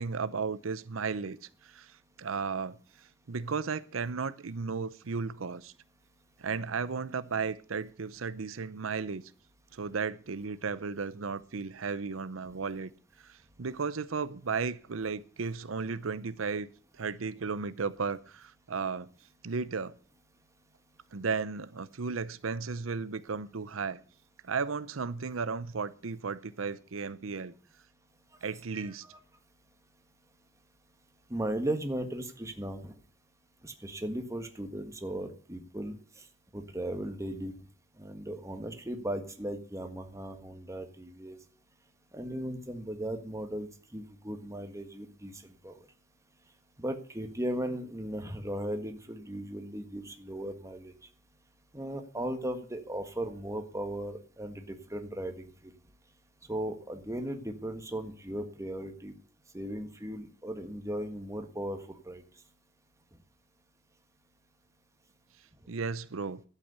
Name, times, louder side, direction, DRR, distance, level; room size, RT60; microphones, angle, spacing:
voice 1, 0.0-5.7 6.4-9.2 9.7-12.9 13.2-16.7 16.9-19.1 19.4-19.9 21.1-24.0 24.4-27.5 28.4-29.0 65.7-66.4, right 5 dB, 90° right, 0.7 m, -34 dB
voice 2, 31.3-33.0 33.6-35.9 36.5-37.5 38.0-41.4 42.1-45.7 46.8-50.9 51.7-55.7 56.5-59.1 59.5-62.2, right 1 dB, 15° right, 1.6 m, -37 dB
12.0 x 8.5 x 8.0 m
head